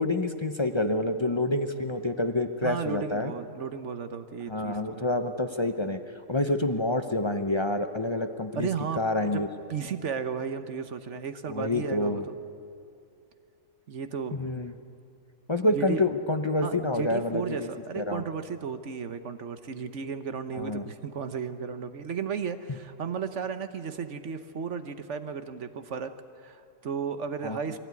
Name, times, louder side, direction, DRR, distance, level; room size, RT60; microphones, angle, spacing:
voice 1, 0.0-3.3 4.5-6.0 6.3-8.7 9.0-9.5 11.5-12.2 14.3-14.7 15.5-17.7 18.0-18.2 20.5-20.8 27.4-27.6, left 2 dB, 40° left, 7 dB, 0.4 m, -27 dB
voice 2, 2.6-5.1 8.5-9.4 9.7-12.4 13.9-14.4 15.7-16.0 16.6-26.1 26.4-27.8, right 6 dB, 50° right, 10 dB, 1.1 m, -34 dB
23.5 x 16.5 x 9.6 m, 2.5 s
omnidirectional pair, 1.9 m